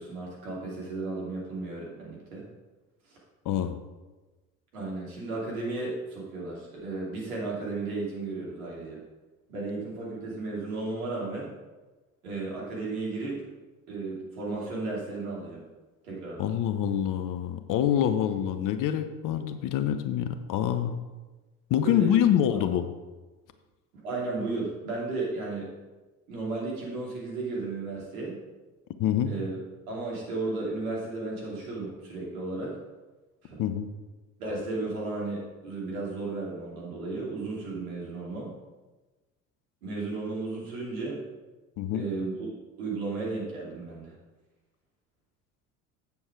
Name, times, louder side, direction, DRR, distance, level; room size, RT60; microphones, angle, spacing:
voice 1, 0.0-2.4 3.1-3.2 4.7-9.0 9.5-11.5 12.2-13.4 13.9-15.6 16.0-16.5 21.8-22.3 23.9-25.7 26.3-28.4 29.2-29.6 29.9-32.8 33.4-33.6 34.4-38.5 39.8-41.2 41.9-42.3 42.8-44.2, right 3 dB, 75° right, -4 dB, 2.8 m, -34 dB
voice 2, 3.4-3.8 16.4-21.0 21.7-22.9 29.0-29.3 33.6-33.9 41.8-42.1, left 10 dB, 50° left, 10 dB, 0.8 m, -26 dB
8.2 x 7.1 x 4.6 m, 1.2 s
figure-of-eight pair, 60°, 43 cm